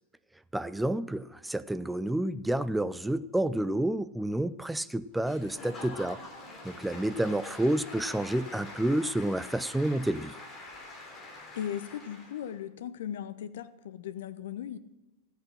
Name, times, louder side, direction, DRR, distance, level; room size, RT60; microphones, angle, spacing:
voice 1, 0.5-6.2 6.6-10.4, right 1 dB, 5° right, 15 dB, 0.4 m, -29 dB
Applause / Crowd, 5.2-12.5, left 2 dB, 20° left, 3.2 m, -45 dB
voice 2, 11.5-14.8, left 9 dB, 60° left, 13 dB, 0.7 m, -37 dB
14.5 x 8.2 x 6.1 m, 1.1 s
figure-of-eight pair, 90°, 0 cm